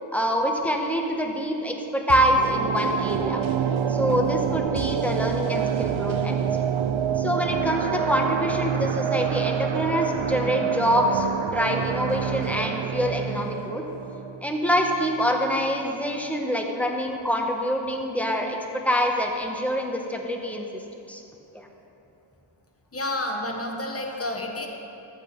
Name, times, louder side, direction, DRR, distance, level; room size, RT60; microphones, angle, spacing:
voice 1, 0.1-3.4 3.9-6.4 7.2-13.8 14.4-18.6 18.8-20.6 21.1-21.2 21.5-21.7, equal, 5° left, 1 dB, 1.0 m, -25 dB
sound 1, 2.1-15.2 15.5-15.6, right 8 dB, 75° right, 0.6 m, -27 dB
voice 2, 22.9-24.7, left 1 dB, 30° left, 2 dB, 1.2 m, -30 dB
13.5 x 6.2 x 5.1 m, 2.9 s
wide cardioid pair, 110°, 48 cm